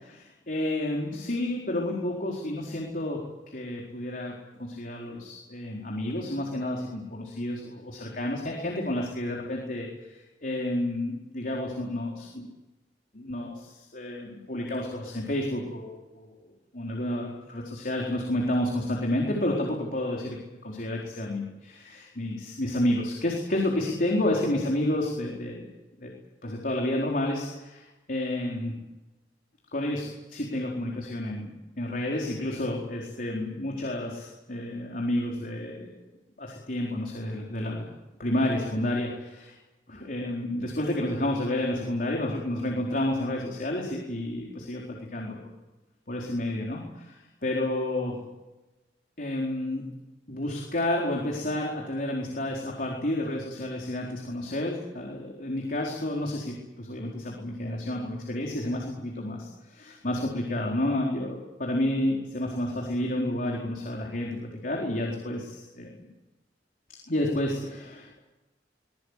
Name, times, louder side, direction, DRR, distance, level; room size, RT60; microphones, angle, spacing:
voice 1, 0.0-12.5 13.1-16.3 16.7-20.4 20.6-25.7 26.0-26.1 26.4-28.8 29.7-31.5 31.8-36.0 36.4-37.9 38.2-39.5 39.9-45.4 46.1-48.2 49.2-49.8 50.3-66.0 67.1-68.2, left 1 dB, 50° left, -1 dB, 4.4 m, -30 dB
24.5 x 21.0 x 8.4 m, 1.1 s
head